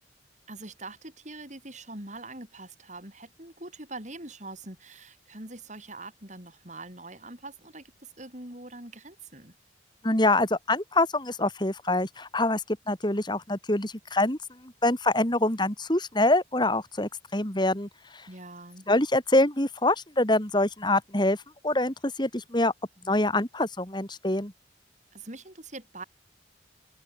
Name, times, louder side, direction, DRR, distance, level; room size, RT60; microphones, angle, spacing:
voice 1, 0.5-9.5 18.3-18.9 25.1-26.0, right 2 dB, 40° right, 8.0 m, -43 dB
voice 2, 10.0-12.6 12.9-14.4 14.6-17.9 18.9-21.4 21.6-22.7 23.0-24.5, left 2 dB, 25° left, 3.3 m, -25 dB
open air
head